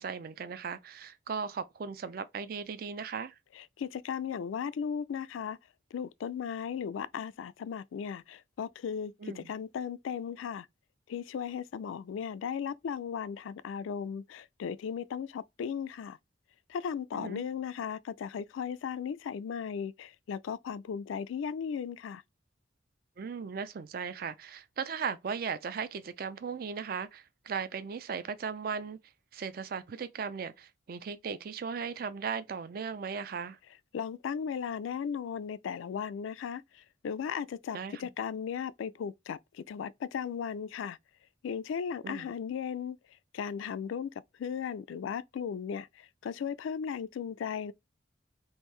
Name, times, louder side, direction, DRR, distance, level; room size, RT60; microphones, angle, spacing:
voice 1, 0.0-3.4 9.2-9.5 17.1-17.4 23.2-29.0 29.3-33.6 37.7-38.0 42.0-42.3, right 6 dB, 50° right, 0.4 m, -37 dB
voice 2, 3.5-5.6 5.9-10.7 11.1-16.2 16.7-22.2 33.9-41.0 41.4-43.0 43.3-44.1 44.4-47.7, left 7 dB, 85° left, 0.3 m, -36 dB
3.5 x 2.6 x 3.1 m
head